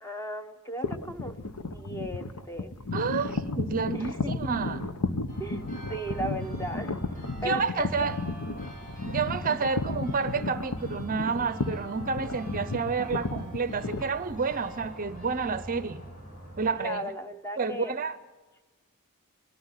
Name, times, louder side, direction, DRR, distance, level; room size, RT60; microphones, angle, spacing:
voice 1, 0.0-1.3 1.7-2.7 3.9-4.3 5.4-7.9 16.7-17.9, right 1 dB, 10° left, 8 dB, 0.9 m, -36 dB
sound 1, 0.8-14.9, left 2 dB, 85° left, 1.0 m, -33 dB
voice 2, 2.9-4.9 7.4-8.2 9.1-16.0 16.6-17.0 17.6-18.2, right 5 dB, 40° right, 14 dB, 0.6 m, -30 dB
sound 2, 5.3-16.7, right 1 dB, 40° left, 7.6 m, -45 dB
20.5 x 13.5 x 9.7 m, 1.2 s
head